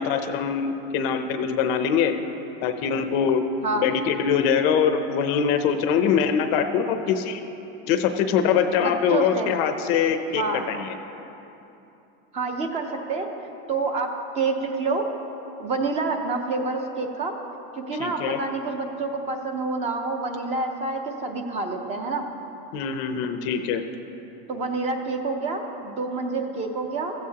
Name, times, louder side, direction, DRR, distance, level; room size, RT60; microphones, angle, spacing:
voice 1, 0.0-2.1 2.6-3.4 3.7-7.4 7.9-11.0 18.0-18.4 22.7-23.8, left 7 dB, 40° left, 8 dB, 0.6 m, -23 dB
voice 2, 8.8-9.5 10.4-10.7 12.3-15.1 15.6-17.3 17.8-22.3 24.5-27.1, right 3 dB, 20° right, 4 dB, 0.7 m, -28 dB
16.0 x 14.5 x 2.9 m, 3.0 s
supercardioid pair, 170°, 29 cm